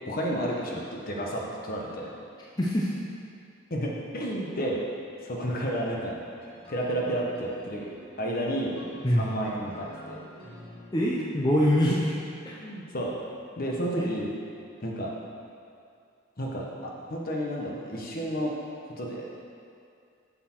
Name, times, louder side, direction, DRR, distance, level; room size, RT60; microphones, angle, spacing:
voice 1, 0.0-2.1 3.7-4.8 5.2-6.2 6.7-7.9 8.2-8.7 9.1-10.2 12.4-13.2 13.6-14.3 14.8-15.1 16.4-18.5 18.8-19.3, equal, 45° left, -2 dB, 1.1 m, -31 dB
voice 2, 2.6-2.9 9.0-9.3 10.9-12.1 14.0-14.1, equal, 20° left, -6 dB, 0.6 m, -24 dB
sound 1, 6.4-11.8, left 2 dB, 25° right, 1.9 m, -48 dB
7.4 x 6.7 x 4.5 m, 2.4 s
head